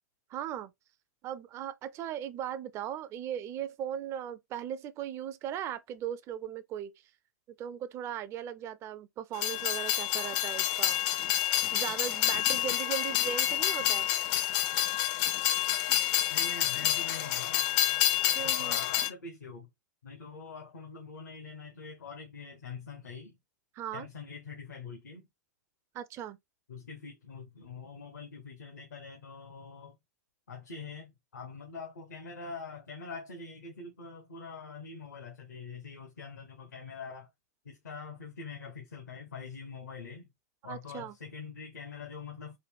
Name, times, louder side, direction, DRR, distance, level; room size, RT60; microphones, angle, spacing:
voice 1, 0.3-0.7 1.2-6.9 7.6-11.0 11.7-14.1 18.3-18.8 23.7-24.1 25.9-26.4 40.6-41.1, right 10 dB, 30° right, 0.4 m, -38 dB
Train, 9.3-19.1, left 12 dB, 40° left, 0.5 m, -28 dB
voice 2, 16.3-17.7 18.4-19.7 20.0-23.4 23.9-25.3 26.7-30.0 30.5-37.3 37.6-40.3 40.6-42.6, left 5 dB, 80° left, 0.9 m, -44 dB
3.8 x 2.2 x 3.3 m
hypercardioid pair, 105°, 9 cm